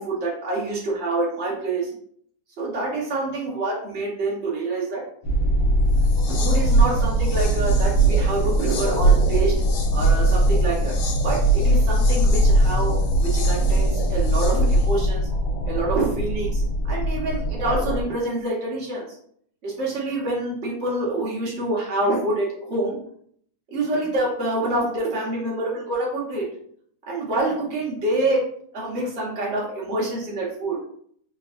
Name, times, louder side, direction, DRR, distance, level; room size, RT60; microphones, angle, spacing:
voice 1, 0.0-1.9 2.6-5.0 6.4-9.6 9.9-11.0 11.2-15.2 15.6-16.6 16.9-19.1 19.6-23.0 23.7-26.5 27.1-28.4 28.7-30.8, right 2 dB, 40° right, -5 dB, 1.2 m, -26 dB
sound 1, 5.2-18.0, equal, 70° left, 1.4 m, -22 dB
sound 2, 6.0-15.0, right 3 dB, 90° left, 1.6 m, -22 dB
3.7 x 3.0 x 2.5 m, 0.64 s
omnidirectional pair, 2.4 m